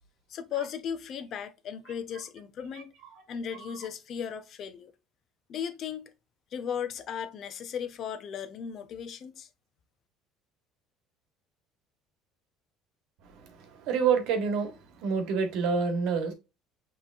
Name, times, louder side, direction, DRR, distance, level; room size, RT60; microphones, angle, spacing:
voice 1, 0.3-2.9 3.3-4.9 5.5-6.1 6.5-9.5, left 8 dB, 50° left, 0.7 m, -36 dB
voice 2, 13.2-16.3, right 5 dB, 70° right, 1.2 m, -28 dB
5.9 x 3.2 x 2.4 m
cardioid pair, 110°, 0 cm